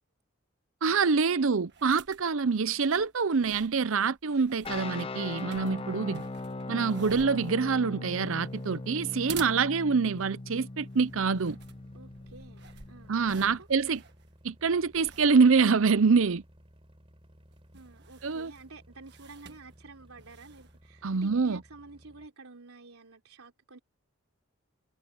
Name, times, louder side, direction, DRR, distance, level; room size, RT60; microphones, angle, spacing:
voice 1, 0.8-6.2 6.7-11.6 13.1-14.0 14.4-16.4 18.2-18.5 21.0-21.6, right 5 dB, 70° right, 0.6 m, -25 dB
sound 1, 1.6-20.9, right 7 dB, 50° right, 1.7 m, -51 dB
sound 2, 4.6-13.5, left 2 dB, 25° left, 0.6 m, -40 dB
voice 2, 5.6-6.1 11.9-13.7 17.7-23.8, right 3 dB, 85° right, 3.7 m, -50 dB
sound 3, 11.1-22.3, equal, 25° right, 6.6 m, -58 dB
head